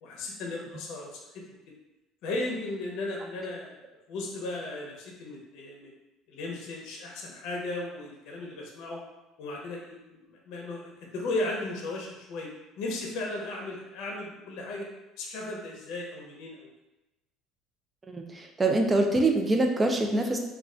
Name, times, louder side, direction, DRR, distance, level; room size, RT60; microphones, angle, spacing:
voice 1, 0.0-1.4 2.2-3.8 4.1-5.9 6.3-9.0 9.4-12.5 12.8-14.9 15.2-16.7, left 2 dB, 65° left, -1 dB, 0.6 m, -36 dB
voice 2, 18.6-20.4, right 2 dB, 15° right, 3 dB, 0.3 m, -24 dB
2.3 x 2.1 x 3.6 m, 1.0 s
cardioid pair, 145°, 0 cm